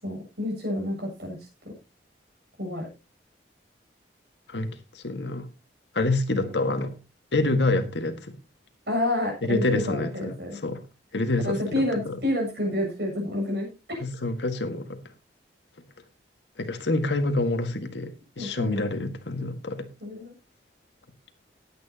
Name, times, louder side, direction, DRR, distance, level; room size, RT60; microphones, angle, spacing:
voice 1, 0.0-1.4 2.6-2.9 6.3-6.5 8.9-10.6 11.4-14.0 18.4-18.8 20.0-20.3, left 1 dB, 65° right, 0 dB, 7.5 m, -29 dB
voice 2, 4.5-5.5 5.9-6.9 7.3-8.3 9.4-10.4 10.6-10.8 11.1-12.2 14.0-15.0 16.6-19.9, left 2 dB, 85° left, 8 dB, 1.7 m, -27 dB
18.0 x 9.2 x 2.9 m, 0.27 s
head